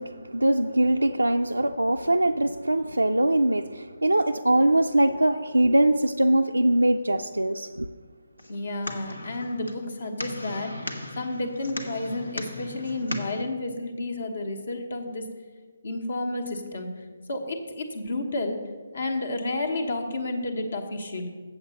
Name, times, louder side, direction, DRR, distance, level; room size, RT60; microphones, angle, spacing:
voice 1, 0.0-7.9, right 1 dB, 85° right, 0.3 m, -22 dB
sound 1, 8.4-13.4, left 1 dB, 85° left, 1.2 m, -37 dB
voice 2, 8.5-10.9 11.2-15.3 15.8-18.6 18.9-21.3, left 2 dB, 60° left, 1.2 m, -31 dB
7.9 x 7.3 x 5.4 m
figure-of-eight pair, 145°, 0 cm